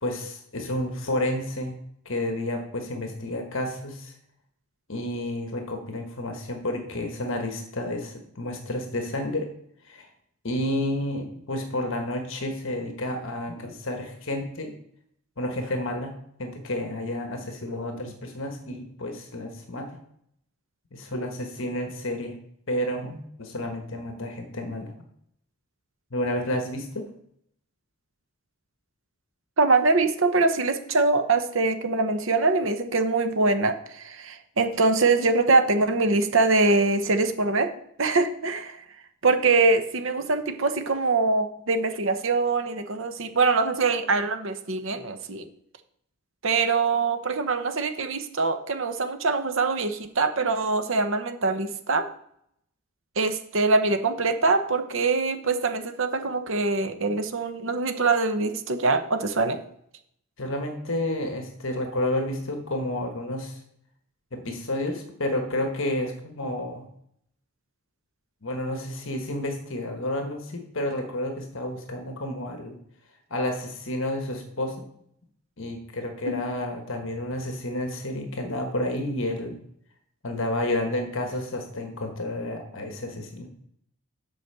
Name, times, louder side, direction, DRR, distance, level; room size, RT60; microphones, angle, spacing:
voice 1, 0.0-1.8 2.0-4.1 4.9-9.5 9.8-10.1 10.4-14.7 15.4-16.1 16.4-20.0 20.9-22.4 22.7-24.9 26.1-27.1 60.4-63.6 64.3-66.9 68.4-72.8 73.3-74.8 75.6-79.6 80.2-83.5, left 1 dB, 60° left, 5 dB, 1.2 m, -30 dB
voice 2, 29.6-37.7 38.0-38.8 39.2-45.5 46.4-52.1 53.2-59.7 76.2-76.5, right 3 dB, 60° right, 8 dB, 0.9 m, -23 dB
8.1 x 5.1 x 6.7 m, 0.70 s
head